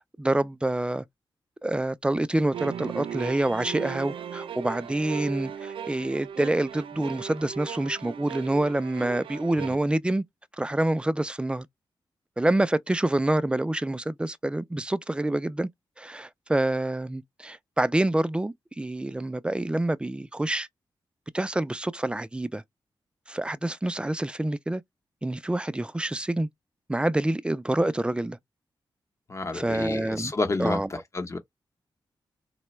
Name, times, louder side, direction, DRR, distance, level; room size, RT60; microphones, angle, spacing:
voice 1, 0.2-1.0 1.6-10.2 10.6-11.7 12.4-15.7 16.0-20.7 21.3-22.6 23.3-24.8 25.2-26.5 26.9-28.4 29.5-30.3 30.6-30.9, right 1 dB, 10° right, 0.3 m, -27 dB
sound 1, 2.5-9.8, right 8 dB, 90° right, 0.4 m, -37 dB
voice 2, 29.3-31.4, left 3 dB, 35° left, 0.9 m, -30 dB
4.0 x 2.2 x 3.0 m
wide cardioid pair, 90°, 9 cm